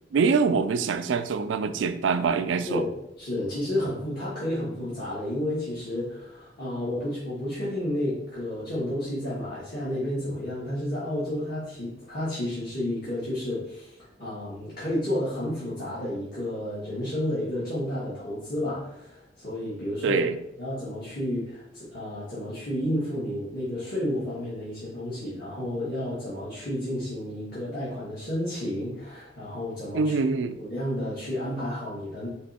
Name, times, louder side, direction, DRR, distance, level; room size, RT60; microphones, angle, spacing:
voice 1, 0.1-2.8 20.0-20.4 29.9-30.6, right 5 dB, 70° right, 11 dB, 0.4 m, -24 dB
voice 2, 2.6-20.2 20.6-30.1 30.6-32.3, left 1 dB, 50° left, -10 dB, 1.5 m, -31 dB
4.3 x 3.0 x 4.1 m, 0.82 s
head